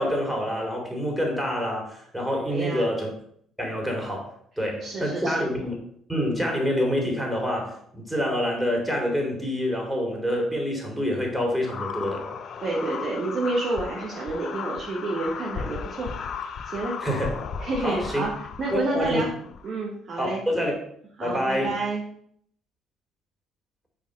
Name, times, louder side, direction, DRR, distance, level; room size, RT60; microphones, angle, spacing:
voice 1, 0.0-3.1 3.6-4.3 4.6-5.7 6.1-12.3 17.0-17.4 17.8-18.2 18.7-19.2 20.2-20.7 21.2-21.7, equal, 5° right, 0 dB, 2.7 m, -27 dB
voice 2, 2.5-2.9 4.8-5.5 12.6-16.1 16.7-17.0 17.6-19.3 19.6-20.4 21.2-22.0, right 2 dB, 50° right, 0 dB, 1.2 m, -29 dB
sound 1, 11.6-19.7, left 6 dB, 50° left, 0.5 m, -35 dB
5.3 x 4.4 x 5.1 m, 0.66 s
hypercardioid pair, 55°, 0 cm